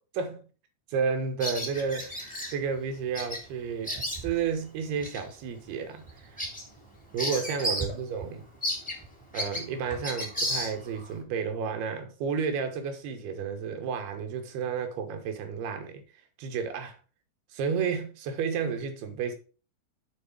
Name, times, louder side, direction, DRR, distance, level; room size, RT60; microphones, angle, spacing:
voice 1, 0.9-4.0 4.2-6.4 7.1-8.4 9.3-16.0 16.4-17.0 17.5-19.3, right 6 dB, 90° right, 3.3 m, -31 dB
Bird vocalization bird call bird song, 1.4-2.5 3.1-3.4 3.7-4.5 5.0-5.2 5.6-5.7 6.1-8.0 8.2-8.3 8.6-11.1, equal, 5° left, 1.9 m, -33 dB
7.7 x 5.0 x 5.1 m
omnidirectional pair, 4.4 m